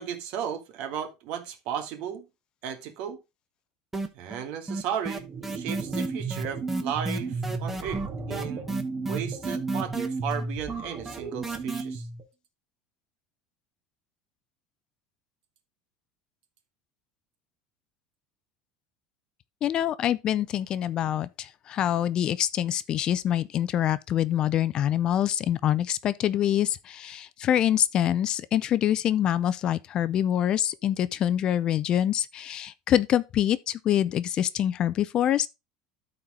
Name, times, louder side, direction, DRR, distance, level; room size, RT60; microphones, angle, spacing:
voice 1, 0.0-2.2 2.6-3.2 4.1-8.7 9.1-12.0, right 8 dB, 60° right, 1.6 m, -35 dB
sound 1, 3.9-4.4 4.7-11.8, right 2 dB, 10° right, 1.0 m, -32 dB
sound 2, 5.1-12.2, right 4 dB, 40° right, 3.0 m, -34 dB
voice 2, 19.6-35.5, left 11 dB, 35° left, 0.5 m, -25 dB
12.5 x 4.4 x 3.6 m
cardioid pair, 150°, 2 cm